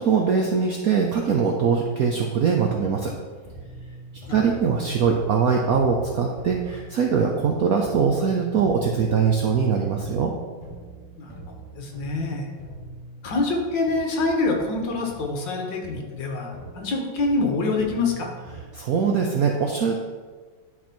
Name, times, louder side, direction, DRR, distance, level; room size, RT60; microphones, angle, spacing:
voice 1, 0.0-3.1 4.3-10.3 18.7-20.0, right 6 dB, 70° right, 1 dB, 0.8 m, -22 dB
sound 1, 3.4-18.6, right 2 dB, 15° left, 1.8 m, -42 dB
voice 2, 11.8-12.5 13.2-18.3, left 3 dB, 65° left, 2 dB, 1.7 m, -25 dB
10.5 x 4.2 x 4.4 m, 1.4 s
omnidirectional pair, 2.3 m